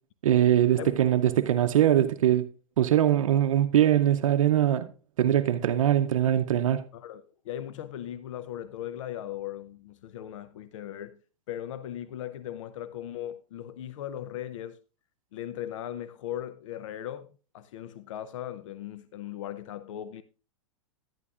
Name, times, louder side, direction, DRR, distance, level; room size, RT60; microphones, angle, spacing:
voice 1, 0.2-2.5 2.8-4.9 5.2-6.8, right 11 dB, 80° right, 0.6 m, -22 dB
voice 2, 6.9-11.2 11.5-14.8 15.3-20.2, left 11 dB, 70° left, 0.6 m, -38 dB
11.0 x 10.5 x 2.4 m
hypercardioid pair, 135°, 17 cm